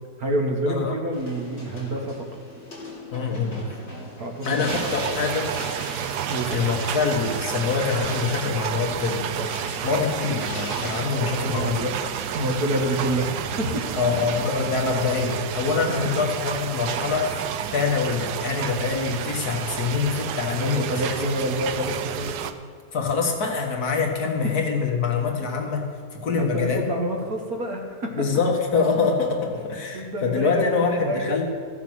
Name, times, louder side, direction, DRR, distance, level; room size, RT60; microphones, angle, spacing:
voice 1, 0.2-2.2 4.2-4.7 6.3-6.5 11.6-11.9 12.3-14.2 20.6-22.3 26.4-28.3 29.9-31.5, right 1 dB, 65° right, 2 dB, 2.0 m, -27 dB
sound 1, 1.1-14.1, left 1 dB, 35° left, 2.8 m, -39 dB
voice 2, 3.1-3.7 4.4-5.5 6.1-6.2 6.5-9.5 9.8-11.9 14.0-20.8 22.9-26.8 28.2-31.5, left 5 dB, 70° left, 2 dB, 1.9 m, -25 dB
sound 2, 4.7-22.5, right 9 dB, 90° right, 1.2 m, -30 dB
sound 3, 6.8-11.9, left 3 dB, 55° left, 2.5 m, -46 dB
14.5 x 7.0 x 6.1 m, 2.1 s
omnidirectional pair, 1.7 m